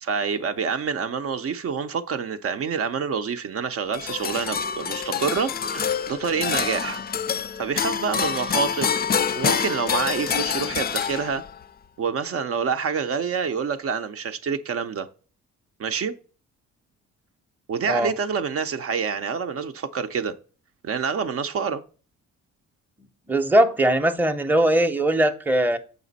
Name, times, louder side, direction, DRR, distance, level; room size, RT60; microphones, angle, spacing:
voice 1, 0.0-7.0 7.6-9.0 9.3-11.4 12.0-15.1 15.8-16.1 17.7-20.4 20.8-21.8, right 6 dB, 50° right, 0.6 m, -27 dB
sound 1, 3.9-11.6, left 7 dB, 30° left, 0.4 m, -26 dB
voice 2, 23.3-25.8, right 1 dB, 5° right, 0.7 m, -20 dB
6.9 x 5.0 x 4.0 m
cardioid pair, 90°, 30 cm